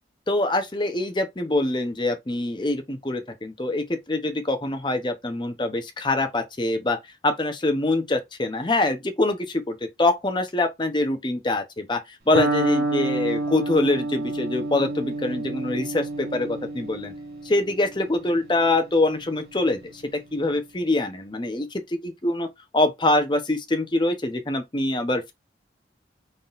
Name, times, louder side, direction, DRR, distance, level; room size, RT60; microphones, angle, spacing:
voice 1, 0.3-7.0 7.2-12.0 12.3-16.5 16.7-17.1 17.4-20.0 20.3-22.5 22.7-25.3, left 2 dB, 25° left, 0.7 m, -24 dB
Electric guitar, 12.3-20.2, right 2 dB, 55° right, 1.9 m, -29 dB
3.9 x 3.8 x 2.5 m
head